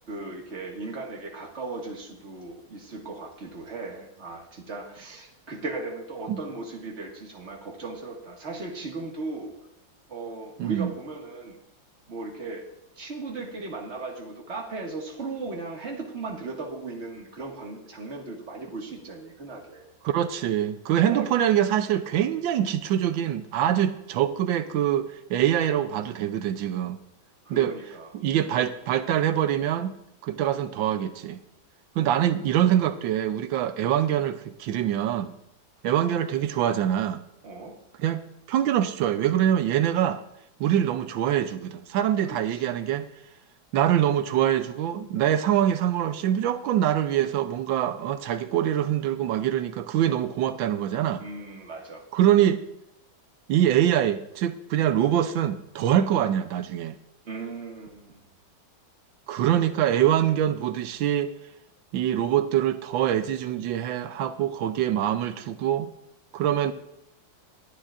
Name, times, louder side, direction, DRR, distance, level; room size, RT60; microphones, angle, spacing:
voice 1, 0.1-9.5 10.1-11.6 12.1-12.7 13.0-19.9 21.1-21.3 27.4-28.1 32.0-32.1 37.4-37.8 42.3-42.7 51.2-52.0 57.2-58.2, right 3 dB, 35° right, 0 dB, 2.0 m, -37 dB
voice 2, 10.6-10.9 20.0-27.0 27.5-27.7 28.1-29.9 30.2-31.4 32.0-35.4 35.8-37.2 38.0-40.2 40.6-43.1 43.7-51.2 52.1-52.6 53.5-56.9 59.3-61.3 61.9-65.9 66.3-66.7, right 11 dB, 90° right, 9 dB, 1.4 m, -24 dB
21.5 x 10.0 x 2.5 m, 0.80 s
omnidirectional pair, 2.1 m